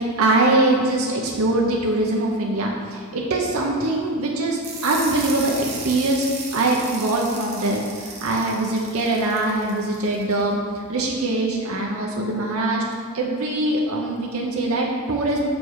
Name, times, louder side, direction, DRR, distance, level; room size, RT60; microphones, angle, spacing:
voice 1, 0.0-12.8 13.1-15.5, right 2 dB, 85° right, -1 dB, 0.8 m, -22 dB
sound 1, 4.6-10.4, right 4 dB, 35° right, 1.1 m, -36 dB
6.4 x 5.2 x 4.7 m, 2.1 s
head